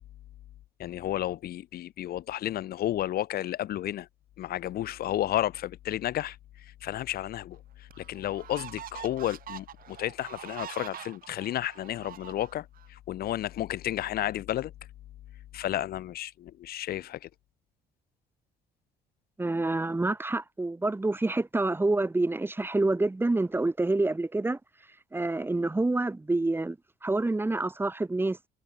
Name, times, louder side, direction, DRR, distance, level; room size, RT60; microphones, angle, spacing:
voice 1, 0.8-4.1 4.4-14.7 15.5-17.3, left 13 dB, 65° left, 1.9 m, -32 dB
sound 1, 7.2-7.3 7.9-12.9, right 11 dB, 60° right, 5.5 m, -44 dB
voice 2, 19.4-24.6 25.1-26.8 27.0-28.4, right 2 dB, 15° right, 2.7 m, -27 dB
cardioid pair, 110°, 17 cm